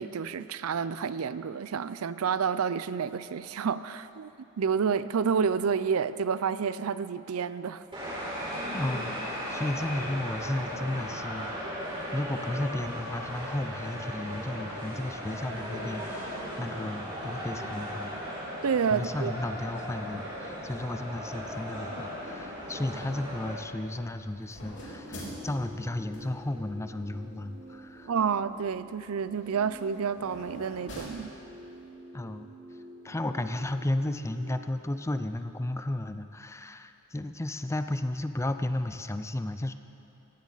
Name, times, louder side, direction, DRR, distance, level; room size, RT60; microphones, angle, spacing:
voice 1, 0.0-4.3 4.6-7.8 18.6-19.3 28.1-31.3, right 6 dB, 85° right, 15 dB, 0.5 m, -29 dB
sound 1, 7.9-23.5, equal, 25° right, 4.4 m, -37 dB
voice 2, 8.7-11.8 12.1-18.1 18.9-28.1 32.1-32.5 33.0-39.7, left 1 dB, 15° left, 9 dB, 0.4 m, -33 dB
sound 2, 23.0-31.9, equal, 60° left, 3.6 m, -48 dB
sound 3, 24.8-34.7, right 1 dB, 45° right, 1.1 m, -48 dB
17.0 x 15.5 x 4.0 m, 2.8 s
head